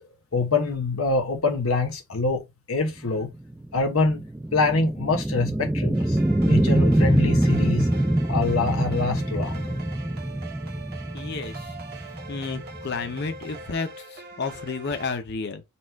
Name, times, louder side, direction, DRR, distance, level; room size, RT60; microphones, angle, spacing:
voice 1, 0.3-2.4 2.7-3.3 3.7-4.2 4.5-6.2 6.4-7.9 8.3-9.8, left 3 dB, 80° left, 1.1 m, -25 dB
sound 1, 3.0-13.7, right 1 dB, 5° right, 0.3 m, -24 dB
sound 2, 5.9-15.1, right 2 dB, 50° right, 1.1 m, -42 dB
voice 2, 11.1-11.8 12.3-15.6, left 4 dB, 50° left, 0.6 m, -31 dB
4.3 x 2.4 x 4.5 m
head